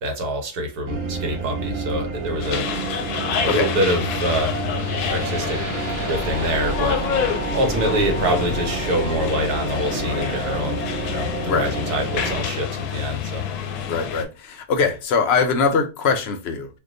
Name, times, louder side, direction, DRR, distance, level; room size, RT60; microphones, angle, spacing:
voice 1, 0.0-2.7 3.3-4.6 5.1-5.6 6.1-7.0 7.5-13.4, equal, 85° right, 1.4 m, -25 dB
sound 1, 0.9-12.4, right 4 dB, 50° right, 0.6 m, -30 dB
sound 2, 2.4-14.2, left 7 dB, 85° left, 1.1 m, -28 dB
sound 3, 4.8-12.8, equal, 20° right, 0.9 m, -33 dB
voice 2, 13.9-16.7, left 5 dB, 65° left, 0.6 m, -22 dB
2.7 x 2.3 x 3.7 m
omnidirectional pair, 1.6 m